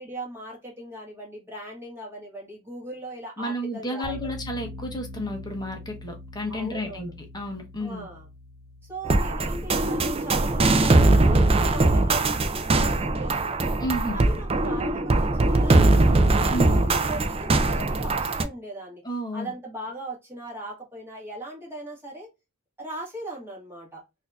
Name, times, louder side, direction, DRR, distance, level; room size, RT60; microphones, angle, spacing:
voice 1, 0.0-4.3 6.5-7.1 7.8-8.3 8.9-13.8 14.1-19.0 19.3-22.3 22.8-24.0, right 1 dB, 10° right, 1.7 m, -38 dB
voice 2, 3.4-8.1 13.8-14.2 16.5-16.8 19.0-19.5, equal, 20° left, 0.9 m, -31 dB
sound 1, 4.0-12.9, left 2 dB, 70° right, 0.9 m, -44 dB
sound 2, 9.1-18.4, right 2 dB, 25° right, 0.4 m, -21 dB
4.2 x 2.7 x 2.3 m
head